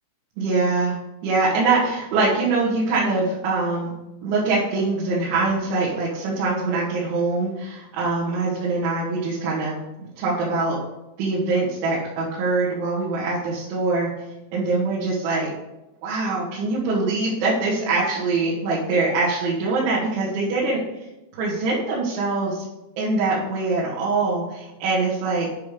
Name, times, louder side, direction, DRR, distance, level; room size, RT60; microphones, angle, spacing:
voice 1, 0.4-1.0 1.2-3.9 4.2-10.8 11.2-14.1 14.5-15.5 16.0-20.8 21.3-22.6 23.0-25.5, right 3 dB, 85° right, -8 dB, 4.2 m, -23 dB
10.5 x 5.0 x 5.1 m, 0.95 s
omnidirectional pair, 5.3 m